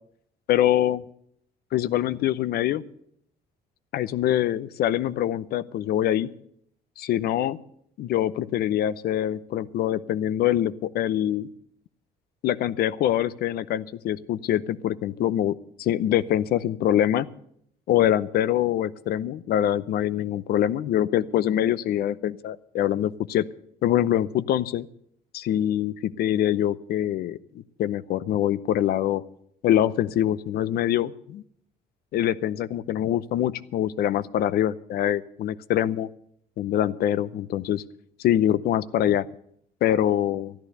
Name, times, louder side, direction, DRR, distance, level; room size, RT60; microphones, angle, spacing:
voice 1, 0.5-1.0 1.7-2.8 3.9-6.3 7.0-7.6 8.0-11.5 12.4-17.3 17.9-23.5 23.8-24.9 25.3-27.4 27.8-29.2 29.6-31.4 32.1-36.1 36.6-37.8 38.2-39.3 39.8-40.5, left 11 dB, 65° left, 18 dB, 0.7 m, -24 dB
13.5 x 11.5 x 6.7 m, 0.69 s
cardioid pair, 110°, 17 cm